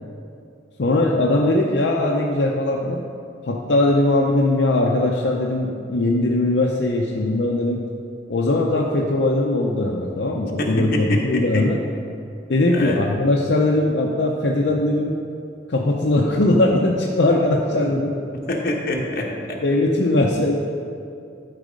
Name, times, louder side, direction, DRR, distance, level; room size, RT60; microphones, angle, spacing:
voice 1, 0.8-3.0 3.5-7.8 8.3-11.8 12.5-15.2 15.7-18.1 19.6-20.6, left 2 dB, 75° left, -2 dB, 0.6 m, -20 dB
voice 2, 10.6-11.7 12.7-13.0 14.7-14.8 17.8-17.9 18.5-19.6, left 1 dB, 55° left, 0 dB, 1.1 m, -25 dB
12.0 x 4.1 x 5.1 m, 2.5 s
head